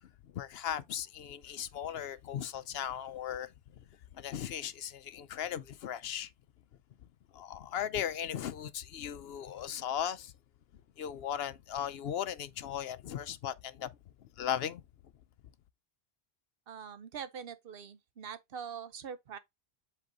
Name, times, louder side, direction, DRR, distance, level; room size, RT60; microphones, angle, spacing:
voice 1, 0.0-3.9 4.1-6.3 7.3-10.3 11.0-14.8, left 9 dB, 70° left, 0.8 m, -37 dB
voice 2, 16.7-19.4, right 7 dB, 65° right, 0.9 m, -43 dB
8.0 x 3.1 x 3.8 m
omnidirectional pair, 1.1 m